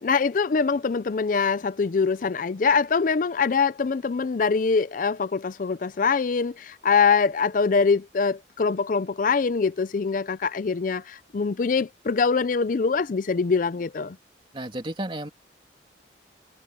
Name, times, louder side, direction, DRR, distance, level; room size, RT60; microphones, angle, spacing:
voice 1, 0.0-14.2, left 5 dB, 45° left, 0.4 m, -23 dB
voice 2, 14.5-15.3, right 1 dB, 30° right, 2.9 m, -32 dB
head